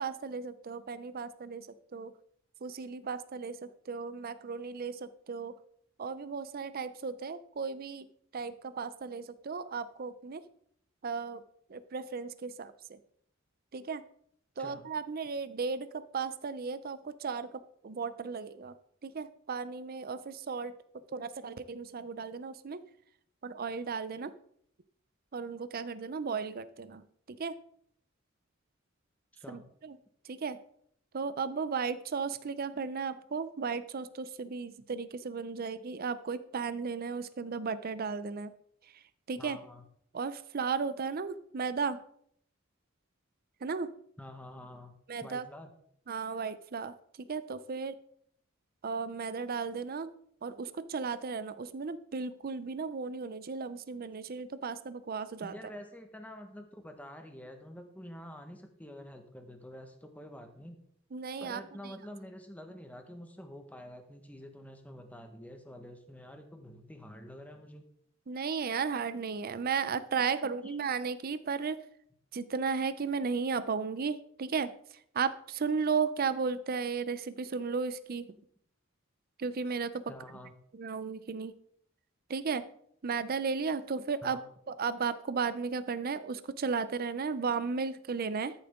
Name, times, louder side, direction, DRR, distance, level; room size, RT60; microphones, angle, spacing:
voice 1, 0.0-1.7 1.9-2.1 2.6-5.5 6.0-8.1 8.3-10.4 11.0-11.4 11.7-13.0 13.7-14.0 14.6-17.5 17.8-18.7 19.0-20.7 21.1-22.8 23.4-24.3 25.3-27.5 29.5-30.0 30.2-30.6 31.1-38.5 38.9-39.0 39.3-39.6 40.1-42.0 43.6-43.9 45.1-45.5 46.1-48.0 48.8-50.1 50.4-55.5 61.1-61.9 68.3-71.8 72.3-74.7 75.1-78.3 79.4-80.0 80.7-81.5 82.3-82.6 83.0-84.4 84.7-88.5, right 5 dB, 50° right, 13 dB, 0.5 m, -35 dB
voice 2, 39.4-39.8 44.2-44.9 45.2-45.7 55.4-60.8 61.4-67.8 70.2-70.8 78.3-78.4 80.1-80.5 84.2-84.5, left 1 dB, 10° left, 5 dB, 1.3 m, -48 dB
13.0 x 7.2 x 3.7 m, 0.66 s
head